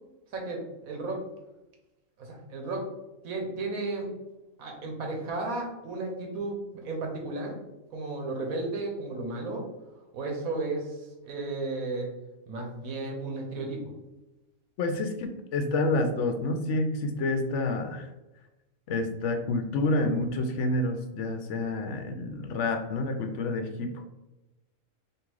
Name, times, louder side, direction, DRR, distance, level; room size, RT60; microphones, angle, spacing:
voice 1, 0.3-1.3 2.2-2.9 3.2-4.1 4.6-7.6 7.9-9.7 10.1-12.1 12.5-13.9, right 2 dB, 80° right, 1 dB, 1.4 m, -34 dB
voice 2, 14.8-18.1 18.9-24.0, left 2 dB, 65° left, 6 dB, 0.8 m, -28 dB
3.6 x 2.7 x 4.7 m, 1.0 s
omnidirectional pair, 1.4 m